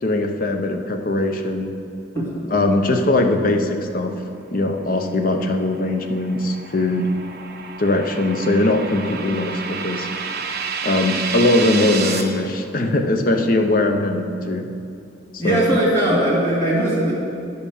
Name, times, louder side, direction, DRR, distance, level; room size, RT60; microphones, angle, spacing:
voice 1, 0.0-1.7 2.5-4.2 4.5-7.1 7.8-10.1 10.8-14.7 15.3-15.7, left 2 dB, 45° left, 5 dB, 0.7 m, -20 dB
sound 1, 5.4-12.2, right 5 dB, 55° right, 0.8 m, -30 dB
voice 2, 15.4-17.1, right 1 dB, 15° left, -8 dB, 2.5 m, -19 dB
10.5 x 5.5 x 6.5 m, 2.7 s
head